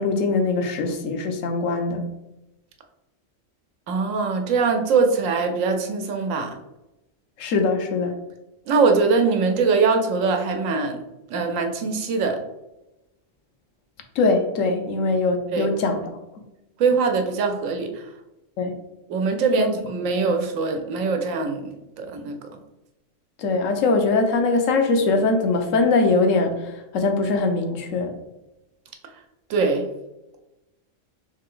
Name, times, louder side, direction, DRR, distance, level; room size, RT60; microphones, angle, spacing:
voice 1, 0.0-2.0 7.4-8.2 14.2-16.0 18.6-18.7 19.5-19.7 20.2-20.3 23.4-28.1, left 3 dB, 85° left, 5 dB, 1.1 m, -22 dB
voice 2, 3.9-6.5 8.7-11.0 11.3-12.4 15.5-15.7 16.8-18.1 19.1-22.5 29.5-29.9, right 4 dB, 90° right, 4 dB, 1.1 m, -22 dB
3.4 x 3.3 x 3.6 m, 0.96 s
omnidirectional pair, 1.3 m